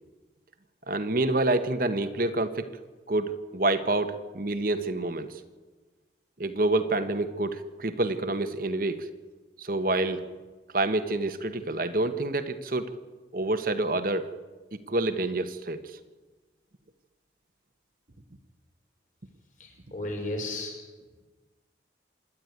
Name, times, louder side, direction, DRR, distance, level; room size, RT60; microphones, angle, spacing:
voice 1, 0.9-2.7 3.1-5.3 6.4-9.0 9.6-10.2 10.7-12.9 13.3-14.2 14.9-15.8, right 2 dB, 50° right, 9 dB, 1.2 m, -27 dB
voice 2, 19.6-20.7, left 2 dB, 45° left, 1 dB, 5.8 m, -34 dB
26.5 x 11.0 x 9.3 m, 1.3 s
head